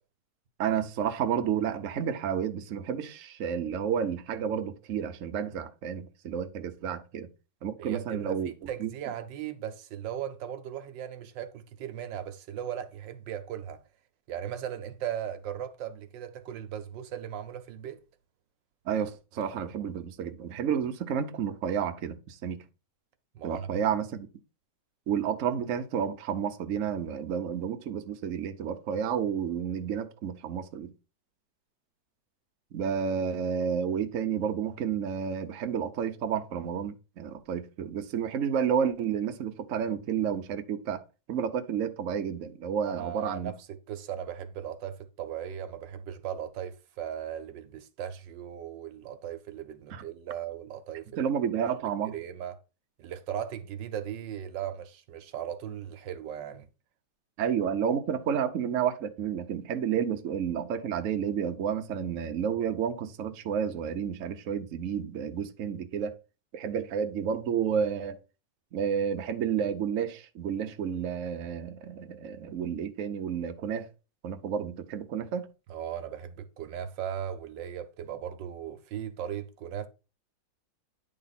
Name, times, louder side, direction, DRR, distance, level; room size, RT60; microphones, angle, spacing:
voice 1, 0.6-7.3 7.6-8.9 18.9-22.6 23.4-24.3 25.1-30.9 32.7-41.0 41.3-43.5 49.9-50.0 51.2-52.1 57.4-66.2 66.5-68.2 68.7-73.9 74.2-75.5, right 8 dB, 55° right, 1.0 m, -31 dB
voice 2, 7.8-13.8 14.3-18.0 23.3-23.9 42.9-51.3 52.0-52.6 53.0-56.7 75.7-79.9, right 9 dB, 90° right, 1.5 m, -38 dB
9.9 x 3.8 x 4.1 m
omnidirectional pair, 1.9 m